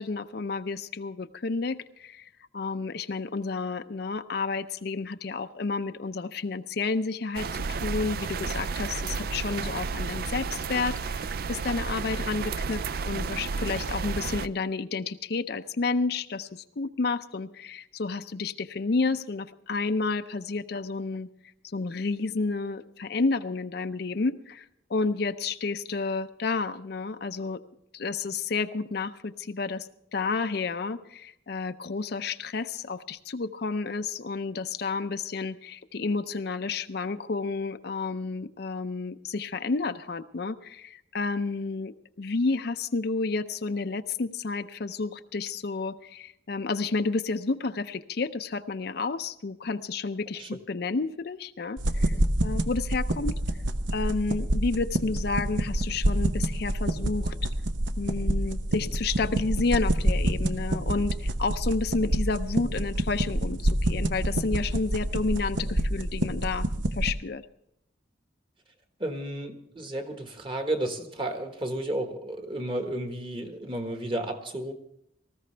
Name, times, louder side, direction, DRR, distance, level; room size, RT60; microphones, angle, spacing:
voice 1, 0.0-21.3 21.6-27.6 27.9-52.2 52.4-53.4 53.9-57.5 58.0-67.4, left 4 dB, 55° left, 10 dB, 0.5 m, -31 dB
sound 1, 7.3-14.5, right 5 dB, 50° right, 0.4 m, -32 dB
sound 2, 51.8-67.1, right 1 dB, 80° right, 0.9 m, -27 dB
voice 2, 69.0-74.7, right 1 dB, 25° right, 6 dB, 1.4 m, -32 dB
18.5 x 14.5 x 3.3 m, 0.78 s
head